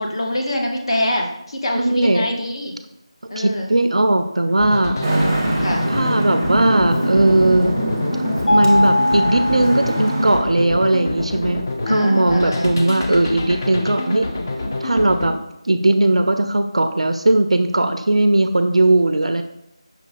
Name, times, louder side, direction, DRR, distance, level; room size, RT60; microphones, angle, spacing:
voice 1, 0.0-2.8 3.3-3.7 5.6-5.9 11.9-12.7, left 1 dB, 55° left, 1 dB, 0.8 m, -24 dB
voice 2, 1.7-2.3 3.4-5.0 5.9-7.8 8.5-14.2 14.8-15.3 15.6-19.4, right 2 dB, 75° right, 8 dB, 0.4 m, -18 dB
sound 1, 4.6-15.3, left 2 dB, 30° left, 0.4 m, -26 dB
Traffic noise roadway noise, 5.0-10.4, right 1 dB, 20° right, 0.7 m, -23 dB
Mallet percussion, 8.5-10.4, left 1 dB, 80° left, 1.1 m, -20 dB
5.5 x 2.4 x 4.0 m, 0.81 s
figure-of-eight pair, 170°, 3 cm